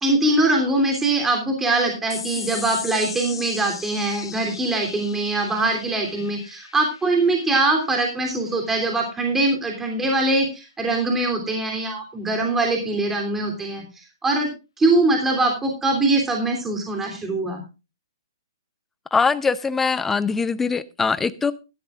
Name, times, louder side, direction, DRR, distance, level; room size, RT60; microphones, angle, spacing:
voice 1, 0.0-14.5 14.8-17.6, right 2 dB, 10° right, 3.1 m, -22 dB
sound 1, 2.1-8.9, left 6 dB, 85° left, 1.7 m, -38 dB
voice 2, 19.1-21.5, left 5 dB, 10° left, 0.7 m, -22 dB
15.0 x 13.0 x 2.4 m
hypercardioid pair, 140°, 3 cm